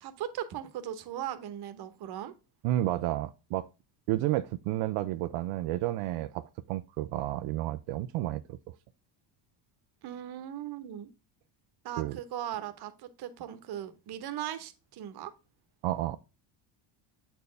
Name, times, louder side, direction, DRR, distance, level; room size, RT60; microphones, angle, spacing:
voice 1, 0.0-2.3 10.0-11.1 11.8-15.3, right 11 dB, 50° right, 1.1 m, -38 dB
voice 2, 2.6-3.7 4.1-8.7 12.0-12.2 15.8-16.2, right 15 dB, 85° right, 0.6 m, -31 dB
8.1 x 4.4 x 3.3 m
cardioid pair, 150°, 48 cm